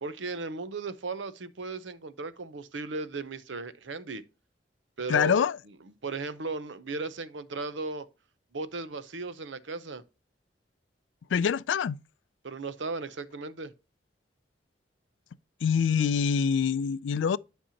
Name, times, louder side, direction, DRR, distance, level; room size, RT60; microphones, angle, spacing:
voice 1, 0.0-4.2 5.0-5.4 6.0-8.1 8.5-10.0 12.4-13.7, right 3 dB, 90° right, 0.8 m, -36 dB
voice 2, 5.1-5.6 11.3-12.0 15.6-17.4, left 7 dB, 85° left, 0.4 m, -25 dB
10.0 x 5.4 x 2.8 m
head